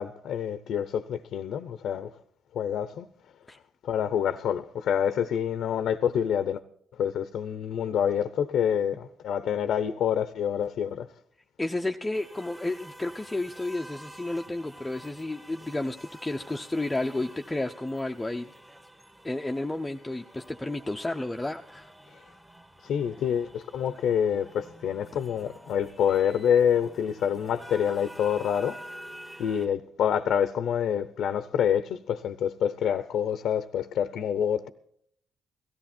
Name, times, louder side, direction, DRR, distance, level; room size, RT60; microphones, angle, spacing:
voice 1, 0.0-2.1 2.5-3.1 3.8-6.6 7.0-11.1 22.8-28.8 29.4-34.7, left 8 dB, 75° left, 0.7 m, -27 dB
voice 2, 11.6-18.5 19.2-21.9, left 2 dB, 10° left, 0.7 m, -32 dB
sound 1, 12.1-29.7, equal, 15° right, 1.6 m, -49 dB
17.5 x 14.0 x 4.3 m
cardioid pair, 90°, 0 cm